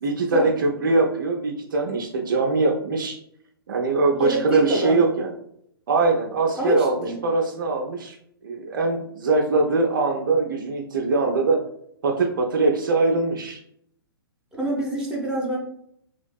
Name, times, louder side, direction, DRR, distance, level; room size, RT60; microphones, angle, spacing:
voice 1, 0.0-3.2 3.7-5.3 5.9-7.0 7.2-8.2 8.4-11.6 12.0-13.6, right 3 dB, 55° right, 2 dB, 0.4 m, -22 dB
voice 2, 4.2-5.0 6.5-7.2 14.5-15.6, right 1 dB, 5° right, -5 dB, 0.6 m, -25 dB
2.8 x 2.5 x 2.2 m, 0.70 s
figure-of-eight pair, 120°, 13 cm